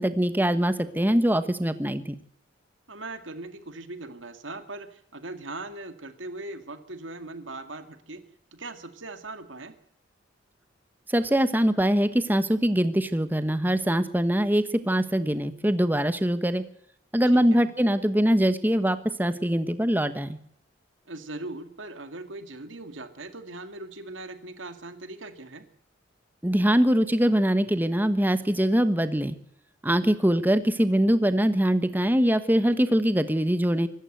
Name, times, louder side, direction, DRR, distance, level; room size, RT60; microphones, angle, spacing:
voice 1, 0.0-2.1 11.1-16.6 17.1-20.4 26.4-29.4 29.8-33.9, equal, 10° right, 11 dB, 1.1 m, -23 dB
voice 2, 2.9-8.2 8.5-9.8 17.3-17.7 21.1-25.7, right 2 dB, 75° right, 8 dB, 2.2 m, -40 dB
25.0 x 13.5 x 7.9 m, 0.67 s
head